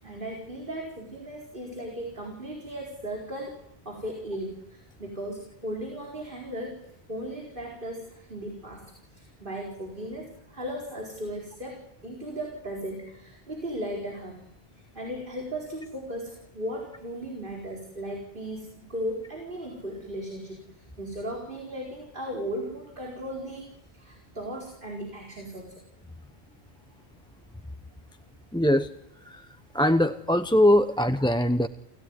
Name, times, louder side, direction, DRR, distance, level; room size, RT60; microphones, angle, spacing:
voice 1, 0.0-6.8 7.1-8.8 9.1-14.4 14.9-25.8, equal, 55° right, 0 dB, 4.8 m, -36 dB
voice 2, 28.5-28.9 29.2-29.5 29.7-31.7, left 1 dB, 5° left, 8 dB, 0.7 m, -22 dB
30.0 x 17.0 x 9.6 m, 0.83 s
omnidirectional pair, 1.1 m